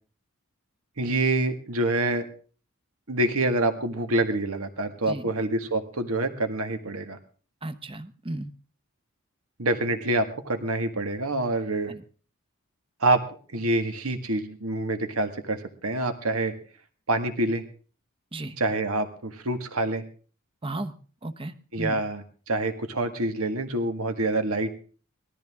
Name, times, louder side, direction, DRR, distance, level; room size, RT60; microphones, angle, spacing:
voice 1, 1.0-2.3 3.1-7.2 9.6-11.9 13.0-13.2 13.5-16.5 17.1-17.6 18.6-20.0 21.7-24.7, right 2 dB, 75° right, 7 dB, 1.8 m, -26 dB
voice 2, 7.6-8.5 11.9-12.0 18.3-18.6 20.6-20.9 21.2-22.0, right 2 dB, 25° right, 11 dB, 1.0 m, -35 dB
20.0 x 13.5 x 3.6 m, 0.40 s
head